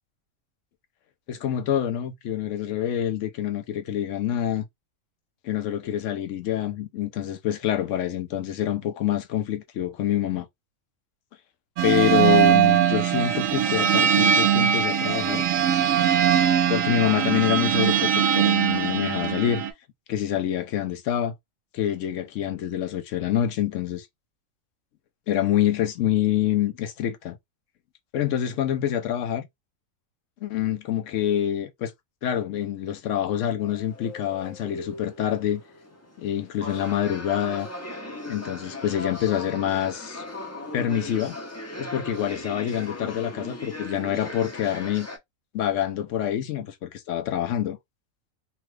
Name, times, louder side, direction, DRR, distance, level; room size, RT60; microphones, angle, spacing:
voice 1, 1.3-4.6 5.4-10.5 11.8-15.4 16.7-19.6 20.1-21.3 21.7-24.1 25.3-27.4 28.1-29.5 30.4-31.9 32.2-35.6 36.2-37.7 38.3-40.2 40.7-41.4 41.8-45.1 45.5-47.8, left 10 dB, 70° left, 0.9 m, -26 dB
sound 1, 11.8-19.7, right 9 dB, 75° right, 0.9 m, -21 dB
sound 2, 33.6-45.2, left 1 dB, 20° left, 0.5 m, -38 dB
3.0 x 2.3 x 3.1 m
omnidirectional pair, 1.4 m